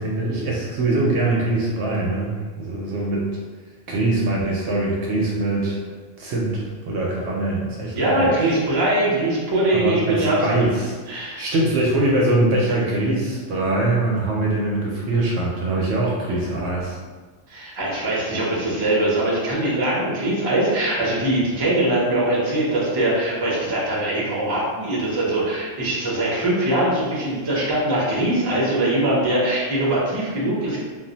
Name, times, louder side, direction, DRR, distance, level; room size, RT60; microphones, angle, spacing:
voice 1, 0.0-3.2 3.9-5.8 6.2-8.1 9.7-17.0, right 2 dB, 65° right, -4 dB, 0.8 m, -23 dB
voice 2, 7.9-10.5 11.1-11.4 17.5-30.8, right 1 dB, 30° right, -5 dB, 0.5 m, -22 dB
2.4 x 2.0 x 3.8 m, 1.4 s
omnidirectional pair, 1.3 m